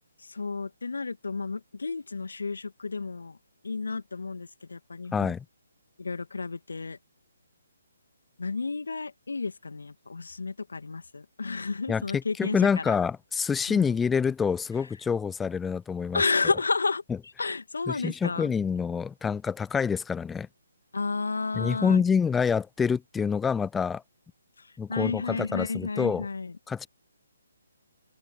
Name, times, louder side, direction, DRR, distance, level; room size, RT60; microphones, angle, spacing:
voice 1, 0.2-3.4 3.6-5.3 6.0-7.0 8.4-13.0 13.7-13.9 16.1-18.5 20.9-22.0 24.6-26.6, left 4 dB, 70° left, 2.1 m, -32 dB
voice 2, 5.1-5.4 11.9-12.0 12.4-16.2 17.9-20.5 21.5-24.0 24.8-26.3 26.7-26.9, left 6 dB, 10° left, 0.6 m, -27 dB
figure-of-eight pair, 140°, 0 cm